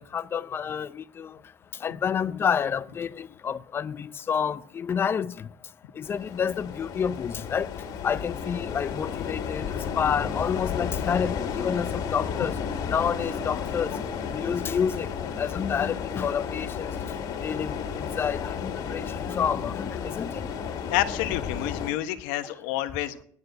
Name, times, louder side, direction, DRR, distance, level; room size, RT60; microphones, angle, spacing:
voice 1, 0.0-1.4 1.8-5.5 6.0-7.7 8.0-12.6 12.9-14.0 14.3-17.0 17.4-20.5, left 7 dB, 30° left, 0.6 m, -29 dB
sound 1, 6.0-21.9, left 6 dB, 50° left, 2.5 m, -33 dB
voice 2, 20.9-23.2, left 14 dB, 85° left, 1.2 m, -29 dB
9.9 x 9.3 x 7.9 m
cardioid pair, 130°, 8 cm